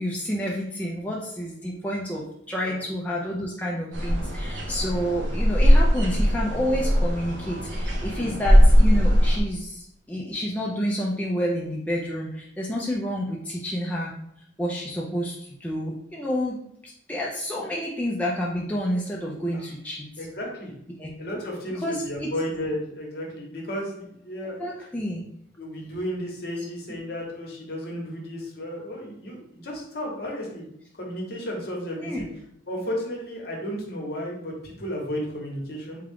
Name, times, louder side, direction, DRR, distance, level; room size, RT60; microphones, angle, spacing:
voice 1, 0.0-14.1 14.6-20.1 21.0-21.1 21.8-22.3 24.6-25.2 26.9-27.0 32.0-32.2, equal, 10° left, -4 dB, 0.3 m, -29 dB
sound 1, 3.9-9.4, equal, 75° right, 0.7 m, -20 dB
voice 2, 20.2-20.7 21.2-24.6 25.6-30.6 30.9-32.3 32.7-36.0, equal, 55° left, -1 dB, 0.9 m, -33 dB
3.6 x 2.3 x 3.5 m, 0.74 s
head